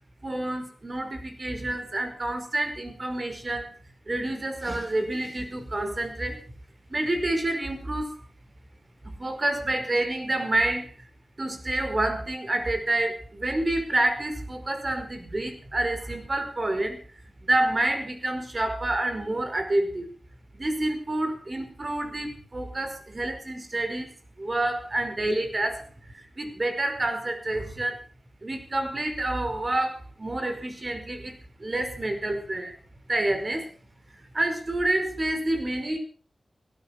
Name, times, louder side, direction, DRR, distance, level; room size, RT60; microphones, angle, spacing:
voice 1, 0.2-3.7 4.1-6.4 6.9-8.2 9.2-10.9 11.4-17.0 17.4-20.1 20.5-28.0 28.4-32.7 33.1-33.7 34.3-36.0, right 1 dB, 40° right, 6 dB, 5.1 m, -28 dB
17.0 x 13.5 x 6.0 m, 0.42 s
cardioid pair, 60°, 0 cm